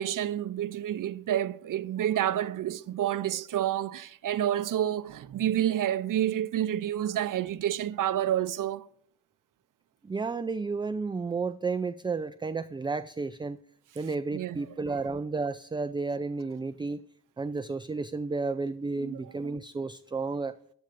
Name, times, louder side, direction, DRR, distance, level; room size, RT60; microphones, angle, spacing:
voice 1, 0.0-8.9 14.3-14.7 19.0-19.2, right 11 dB, 60° right, 0.5 m, -29 dB
voice 2, 10.0-13.6 14.0-17.0 17.4-20.5, right 4 dB, 15° right, 0.3 m, -32 dB
15.5 x 10.5 x 2.5 m
supercardioid pair, 50°, 37 cm